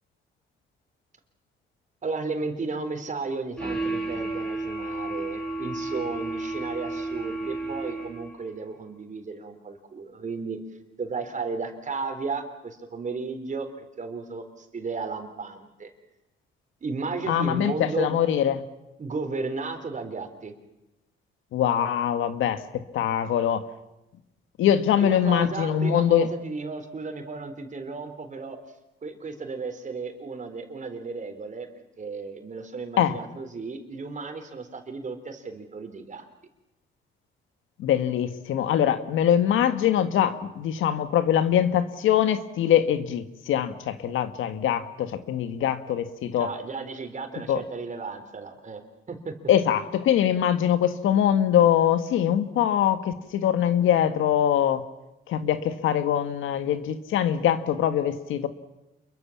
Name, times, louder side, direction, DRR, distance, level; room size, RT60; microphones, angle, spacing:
voice 1, 2.0-10.6 11.0-13.7 14.0-15.9 16.8-18.2 19.0-20.5 25.0-28.6 29.0-31.7 32.0-36.3 46.3-48.8 49.1-49.3, right 4 dB, 40° right, 6 dB, 4.0 m, -34 dB
sound 1, 3.6-8.4, right 2 dB, 5° left, 6.3 m, -32 dB
voice 2, 17.3-18.6 21.5-23.6 24.6-26.3 33.0-33.1 37.8-46.5 47.5-47.6 49.5-54.8 55.3-58.5, left 10 dB, 80° left, 10 dB, 1.6 m, -23 dB
28.0 x 22.5 x 7.4 m, 0.95 s
cardioid pair, 90°, 20 cm